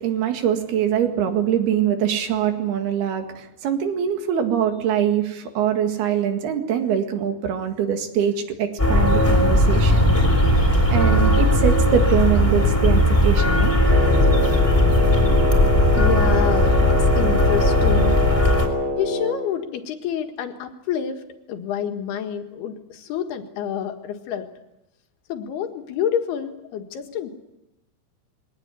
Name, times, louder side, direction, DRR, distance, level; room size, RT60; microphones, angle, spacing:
voice 1, 0.0-10.1 10.9-13.7, right 9 dB, 80° right, 6 dB, 3.9 m, -23 dB
sound 1, 8.8-18.7, left 1 dB, 5° left, 3.3 m, -17 dB
Wind instrument woodwind instrument, 13.8-19.5, left 1 dB, 60° right, 0.6 m, -25 dB
voice 2, 15.9-18.3 19.0-21.2 21.5-24.5 25.3-27.3, left 8 dB, 80° left, 6 dB, 3.6 m, -28 dB
22.0 x 18.0 x 9.7 m, 0.91 s
omnidirectional pair, 4.6 m